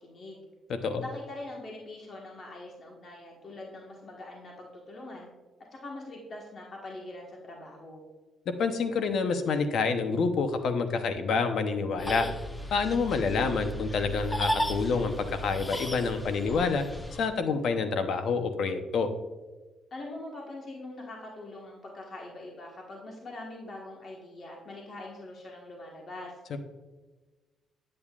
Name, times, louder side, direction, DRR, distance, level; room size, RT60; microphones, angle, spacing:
voice 1, 0.0-0.4 1.0-5.3 5.7-8.0 19.9-26.4, left 2 dB, 50° left, -1 dB, 1.4 m, -43 dB
voice 2, 0.7-1.0 8.5-12.3 12.7-16.8 17.2-19.1 26.5-26.6, left 4 dB, 65° left, 8 dB, 0.8 m, -28 dB
sound 1, 12.0-17.3, equal, 15° left, 0.9 m, -35 dB
8.6 x 8.5 x 2.4 m, 1.2 s
cardioid pair, 90°, 0 cm